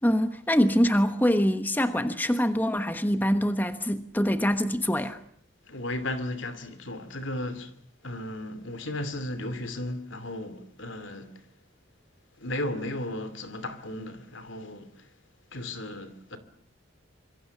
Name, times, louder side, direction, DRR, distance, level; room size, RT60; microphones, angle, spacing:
voice 1, 0.0-5.2, equal, 10° left, 1.1 m, -24 dB
voice 2, 5.6-7.7 8.0-11.4 12.4-15.1 15.5-16.4, left 1 dB, 75° left, 2.7 m, -35 dB
26.0 x 22.5 x 7.2 m
head